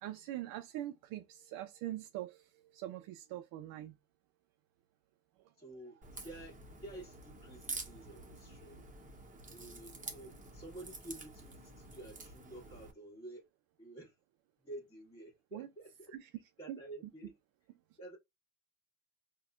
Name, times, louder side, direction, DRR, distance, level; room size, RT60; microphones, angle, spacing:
voice 1, 0.0-4.0 15.5-15.7 16.1-16.3 16.7-16.8, right 13 dB, 55° right, 0.5 m, -43 dB
voice 2, 5.6-6.0 6.2-8.8 9.5-13.5 13.8-14.1 14.6-16.1 16.6-17.3 18.0-18.2, right 1 dB, 10° left, 1.6 m, -50 dB
Crack, 6.0-12.9, right 3 dB, 20° right, 1.0 m, -48 dB
4.0 x 2.3 x 2.4 m
hypercardioid pair, 75°, 43 cm